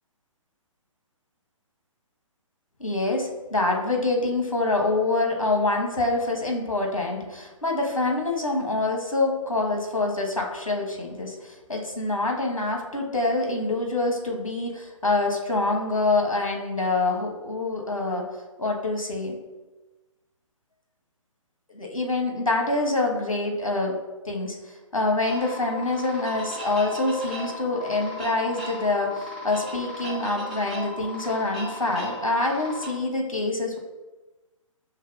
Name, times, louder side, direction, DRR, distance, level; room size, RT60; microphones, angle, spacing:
voice 1, 2.8-18.3 18.6-19.4 21.7-24.0 24.2-33.8, left 2 dB, 80° left, 1 dB, 1.0 m, -26 dB
sound 1, 25.3-32.9, left 1 dB, ahead, 1.1 m, -36 dB
5.6 x 3.4 x 2.3 m, 1.1 s
figure-of-eight pair, 130°, 17 cm